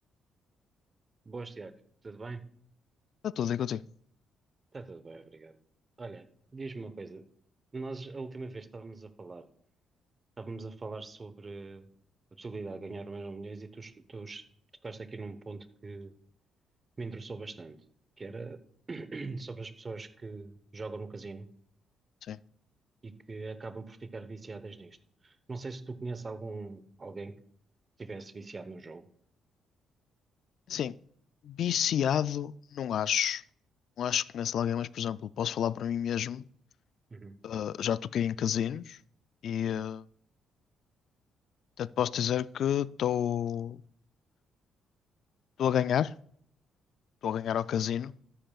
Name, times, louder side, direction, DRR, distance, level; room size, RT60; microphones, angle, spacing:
voice 1, 1.2-1.7 2.0-2.4 4.7-5.6 6.0-6.3 6.5-7.2 7.7-9.5 10.4-11.9 12.4-14.4 14.8-16.1 17.0-17.8 18.2-18.6 18.9-21.5 23.0-25.0 25.2-27.3 28.0-29.1 37.1-37.3, right 3 dB, 30° right, 0.9 m, -41 dB
voice 2, 3.2-3.8 22.3-22.4 30.7-30.9 31.4-33.4 34.0-36.4 37.4-39.0 39.4-40.0 41.8-43.8 45.6-46.1 47.2-48.1, left 9 dB, 70° left, 0.3 m, -30 dB
13.0 x 10.0 x 2.4 m
cardioid pair, 90°, 0 cm